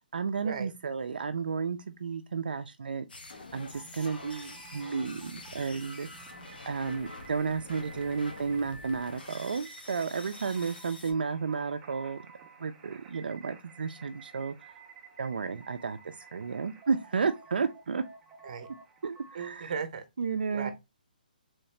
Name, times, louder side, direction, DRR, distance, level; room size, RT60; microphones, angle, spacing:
voice 1, 0.1-6.3 6.7-12.2 12.6-14.7 15.2-18.0 19.0-19.7 20.2-20.7, right 5 dB, 80° right, 0.4 m, -32 dB
sound 1, 3.1-11.1, left 2 dB, 85° left, 1.1 m, -46 dB
sound 2, 3.7-19.6, right 5 dB, 15° right, 0.4 m, -52 dB
voice 2, 19.3-20.0 20.5-20.7, right 6 dB, 45° right, 0.7 m, -36 dB
3.1 x 2.7 x 3.2 m
hypercardioid pair, 165°, 5 cm